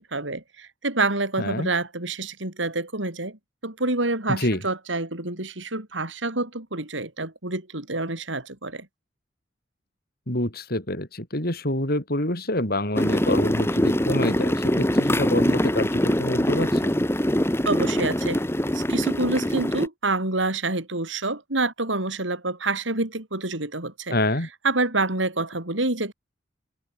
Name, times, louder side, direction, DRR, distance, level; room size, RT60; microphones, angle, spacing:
voice 1, 0.0-8.9 17.6-18.4 18.7-24.1 24.6-26.1, right 2 dB, 85° right, 5.1 m, -27 dB
voice 2, 1.4-1.7 4.3-4.6 10.3-17.0 24.1-24.5, left 1 dB, 55° left, 6.0 m, -27 dB
sound 1, 12.9-19.9, equal, 15° left, 2.3 m, -23 dB
head